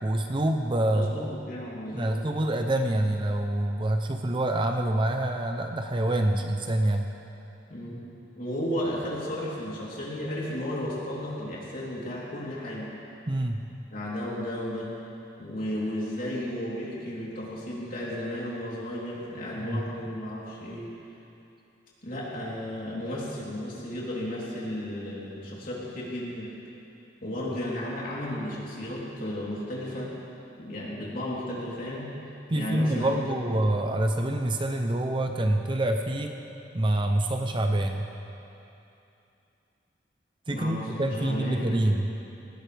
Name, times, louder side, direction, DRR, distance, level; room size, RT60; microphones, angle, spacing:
voice 1, 0.0-1.3 1.9-7.1 13.3-13.6 19.6-19.8 32.5-36.4 36.7-38.1 40.5-42.1, right 1 dB, 25° right, 4 dB, 0.7 m, -26 dB
voice 2, 0.9-2.1 7.7-8.0 8.4-12.9 13.9-14.9 15.4-20.9 22.0-26.5 27.2-30.1 30.6-32.1 32.5-33.5 40.5-41.9, left 1 dB, 50° left, -6 dB, 3.5 m, -34 dB
19.0 x 17.0 x 3.4 m, 2.8 s
head